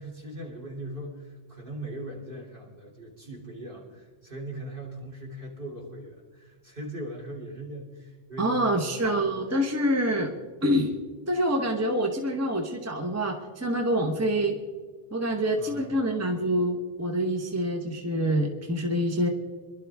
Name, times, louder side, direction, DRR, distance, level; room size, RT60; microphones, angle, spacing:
voice 1, 0.0-9.2 15.6-16.0, right 1 dB, 50° right, -2 dB, 3.3 m, -40 dB
voice 2, 8.4-10.3 10.6-10.9 11.3-14.6 15.1-19.3, equal, 15° right, 3 dB, 1.0 m, -26 dB
25.0 x 12.0 x 3.5 m, 1.5 s
omnidirectional pair, 1.2 m